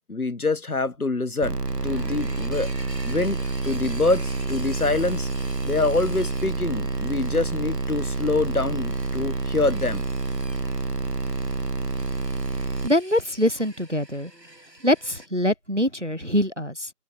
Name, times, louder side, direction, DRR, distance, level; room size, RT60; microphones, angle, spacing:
voice 1, 0.0-1.6 1.8-2.7 3.0-5.3 5.6-10.0, left 3 dB, 60° left, 1.2 m, -25 dB
sound 1, 1.4-12.9, right 3 dB, 70° right, 1.4 m, -28 dB
sound 2, 1.6-15.3, right 1 dB, 85° right, 7.7 m, -46 dB
voice 2, 12.8-14.3 14.8-16.9, left 1 dB, 50° right, 0.5 m, -24 dB
open air
figure-of-eight pair, 175°, 49 cm